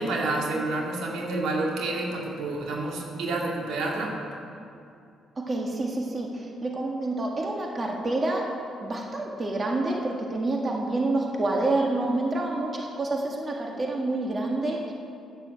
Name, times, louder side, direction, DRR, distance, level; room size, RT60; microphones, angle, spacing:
voice 1, 0.0-4.1, right 2 dB, 85° right, -1 dB, 2.1 m, -29 dB
voice 2, 5.4-14.9, right 2 dB, 35° right, 0 dB, 1.7 m, -28 dB
9.5 x 9.1 x 7.5 m, 2.5 s
cardioid pair, 90°, 0 cm